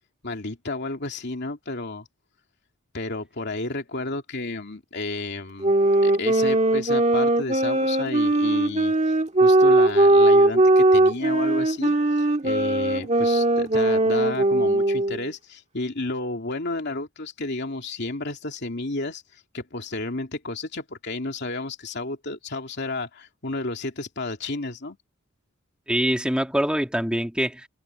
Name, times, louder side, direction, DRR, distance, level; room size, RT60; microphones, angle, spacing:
voice 1, 0.2-2.1 2.9-5.7 6.0-8.9 9.4-25.0, left 2 dB, 50° left, 2.9 m, -32 dB
sound 1, 5.6-15.3, right 2 dB, 30° right, 1.8 m, -19 dB
voice 2, 25.9-27.7, equal, 5° right, 1.9 m, -24 dB
head